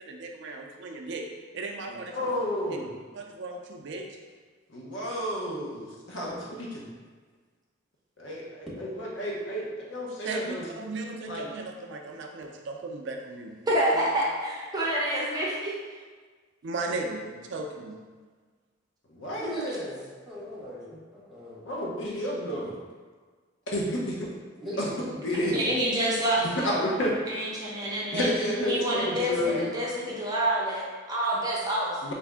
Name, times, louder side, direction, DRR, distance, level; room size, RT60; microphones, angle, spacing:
voice 1, 0.1-1.3 1.5-2.3 3.1-4.2 10.2-13.6 13.9-14.1 16.6-18.0, right 3 dB, 65° right, 2 dB, 0.4 m, -36 dB
voice 2, 1.9-2.9 4.7-6.8 8.2-10.6 11.3-11.5 19.1-19.5 21.7-22.7 23.7-24.3 24.8-24.9 25.2-25.6 26.4-27.1 28.1-29.6 32.0-32.1, equal, 70° left, -3 dB, 0.9 m, -30 dB
voice 3, 13.7-15.8 25.5-26.7 27.3-28.3 28.7-32.1, right 1 dB, 20° right, -5 dB, 0.7 m, -28 dB
voice 4, 19.4-21.6 24.6-24.9 28.9-29.1 29.4-29.5, equal, ahead, -10 dB, 1.4 m, -38 dB
4.1 x 2.6 x 3.5 m, 1.5 s
head